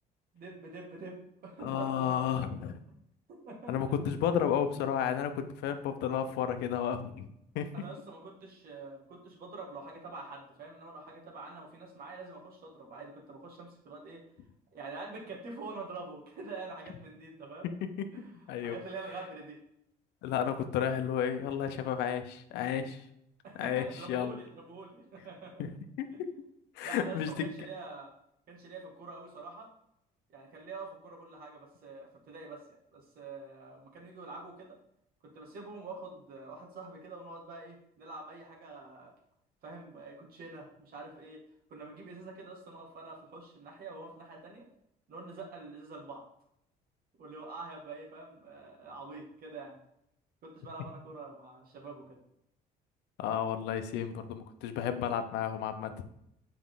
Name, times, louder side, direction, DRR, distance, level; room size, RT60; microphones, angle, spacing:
voice 1, 0.3-2.3 3.3-3.9 7.7-14.2 14.7-17.7 18.1-18.3 18.6-19.6 23.4-25.6 26.1-26.2 26.8-28.1 28.5-29.7 30.3-32.6 32.9-34.8 35.2-39.1 39.6-41.4 41.7-44.7 45.1-46.2 47.2-49.8 50.4-52.2, right 3 dB, 60° right, -1 dB, 2.0 m, -46 dB
voice 2, 1.6-2.8 3.7-7.3 7.5-7.7 17.8-18.1 18.5-18.8 20.2-23.0 23.6-24.3 25.6-25.7 26.0-26.3 26.8-27.4 53.2-55.9, left 9 dB, 90° left, 8 dB, 0.7 m, -32 dB
7.3 x 4.7 x 3.8 m, 0.77 s
cardioid pair, 110°, 17 cm